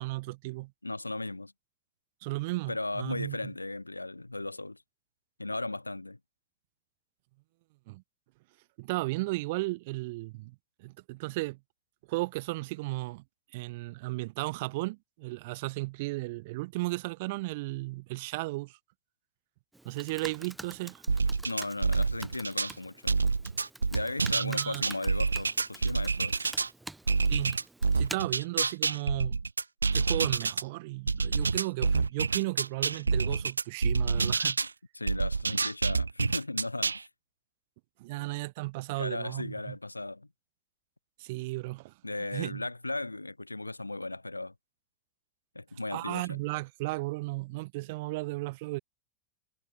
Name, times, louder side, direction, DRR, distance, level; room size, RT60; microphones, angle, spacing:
voice 1, 0.0-0.7 2.2-3.4 7.9-8.0 8.8-10.5 10.8-11.6 12.1-13.2 13.5-18.8 19.8-21.0 24.3-24.8 27.3-27.6 28.0-29.4 29.9-34.6 38.0-39.8 41.2-41.9 42.3-42.6 45.9-48.8, right 22 dB, 50° right, 1.0 m, -35 dB
voice 2, 0.8-1.5 2.7-4.8 5.4-6.2 21.5-23.2 23.9-26.3 34.9-37.1 39.0-40.3 42.0-44.5 45.6-46.4, left 2 dB, 85° left, 1.7 m, -36 dB
Computer keyboard, 19.7-28.2, right 2 dB, 5° right, 2.3 m, -47 dB
sound 1, 21.1-22.7 23.1-26.7 27.1-30.6 31.1-34.7 35.1-37.0, right 4 dB, 75° right, 0.5 m, -27 dB
figure-of-eight pair, 90°, 0 cm